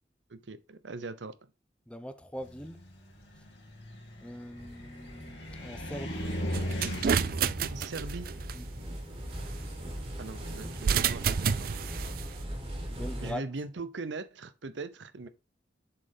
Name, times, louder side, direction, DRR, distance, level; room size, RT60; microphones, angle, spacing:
voice 1, 0.3-1.5 7.7-8.3 10.2-11.7 13.2-15.3, right 3 dB, 85° right, 0.7 m, -40 dB
voice 2, 1.9-2.8 3.4-3.5 4.2-6.3 8.5-8.7 12.9-13.5, equal, 5° left, 0.7 m, -42 dB
Car, 2.4-10.6, equal, 80° left, 2.5 m, -39 dB
sound 1, 4.6-13.3, equal, 30° right, 1.9 m, -41 dB
sound 2, 6.5-8.5 10.7-12.3, right 7 dB, 55° right, 0.4 m, -29 dB
7.3 x 4.3 x 5.0 m
head